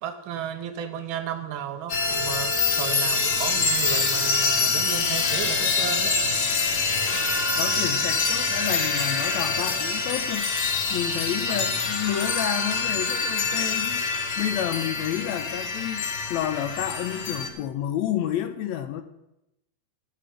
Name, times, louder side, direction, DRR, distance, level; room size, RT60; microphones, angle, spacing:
voice 1, 0.0-6.2 6.6-6.8 11.5-11.8, right 9 dB, 75° right, 7 dB, 1.1 m, -34 dB
sound 1, 1.9-17.5, left 4 dB, 55° left, 1.1 m, -25 dB
voice 2, 7.6-10.5 10.9-14.0 14.4-16.0 16.3-19.0, left 11 dB, 80° left, 8 dB, 1.8 m, -30 dB
11.5 x 7.6 x 5.0 m, 0.90 s
omnidirectional pair, 3.4 m